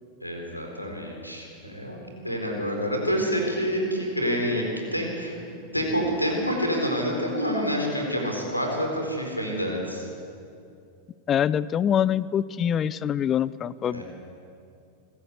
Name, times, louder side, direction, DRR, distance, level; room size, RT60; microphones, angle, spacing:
voice 1, 0.2-2.0 2.2-5.3 5.7-10.1 13.8-14.0, equal, 90° left, 1 dB, 4.3 m, -27 dB
voice 2, 11.3-14.0, left 9 dB, 25° left, 20 dB, 0.5 m, -24 dB
26.0 x 14.5 x 8.2 m, 2.5 s
figure-of-eight pair, 90°, 0 cm